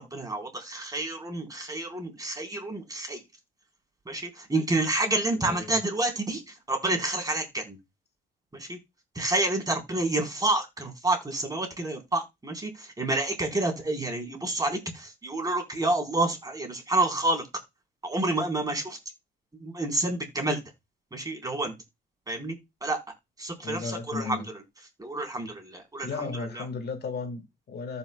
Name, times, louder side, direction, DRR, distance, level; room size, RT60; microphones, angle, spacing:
voice 1, 0.0-3.2 4.1-7.8 8.5-8.8 9.2-17.5 18.0-19.0 19.6-20.6 21.1-21.7 22.3-22.6 22.8-23.0 23.4-24.4 25.0-26.7, right 2 dB, 20° right, 3.8 m, -29 dB
voice 2, 5.4-5.8 23.6-24.5 26.0-28.0, left 4 dB, 55° left, 1.6 m, -35 dB
14.5 x 5.7 x 2.2 m
cardioid pair, 90°, 20 cm